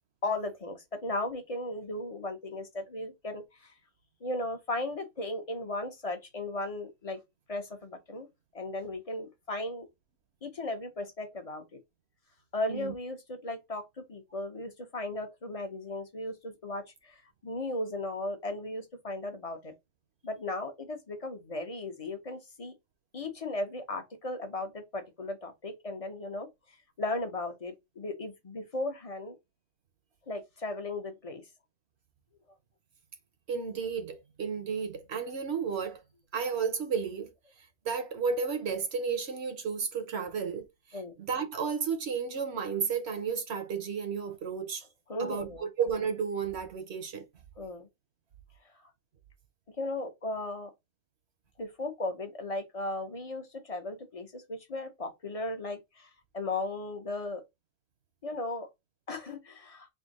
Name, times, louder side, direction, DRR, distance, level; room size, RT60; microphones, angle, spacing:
voice 1, 0.2-3.7 4.2-7.2 7.5-8.3 8.5-9.9 10.4-11.8 12.5-19.7 20.2-22.7 23.1-26.5 27.0-29.4 30.3-31.4 40.9-41.1 45.1-45.7 47.6-47.9 49.8-50.7 51.6-57.4 58.2-58.7 59.1-59.9, left 2 dB, 35° left, 0.8 m, -36 dB
voice 2, 33.5-36.0 36.3-37.3 37.8-44.9 45.2-47.3, right 6 dB, 60° right, 1.0 m, -33 dB
3.6 x 2.7 x 4.0 m
omnidirectional pair, 1.3 m